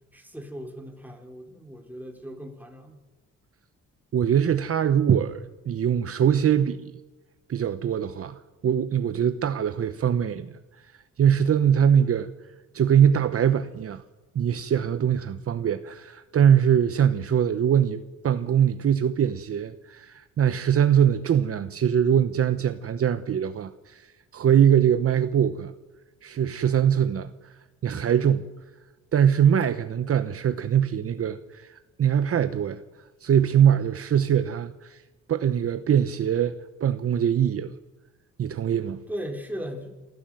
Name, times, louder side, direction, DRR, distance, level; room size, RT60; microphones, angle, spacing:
voice 1, 0.1-3.0 39.1-39.9, equal, 5° right, 2 dB, 4.3 m, -37 dB
voice 2, 4.1-6.9 7.5-10.5 11.2-12.3 12.7-14.0 14.3-25.7 26.2-27.5 27.8-28.5 29.1-32.8 33.2-35.0 35.3-37.7 38.4-39.0, right 9 dB, 50° right, 12 dB, 1.0 m, -22 dB
26.5 x 14.5 x 7.8 m, 1.2 s
cardioid pair, 90°, 30 cm